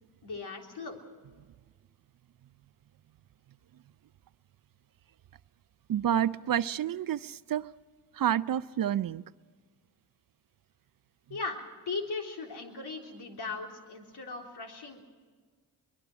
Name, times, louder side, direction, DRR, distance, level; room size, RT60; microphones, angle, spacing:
voice 1, 0.2-1.0 11.3-15.0, left 4 dB, 65° left, 2 dB, 3.7 m, -38 dB
voice 2, 5.9-7.7 8.1-9.2, right 10 dB, 50° right, 17 dB, 0.6 m, -29 dB
23.5 x 20.5 x 6.2 m, 1.5 s
supercardioid pair, 45°, 43 cm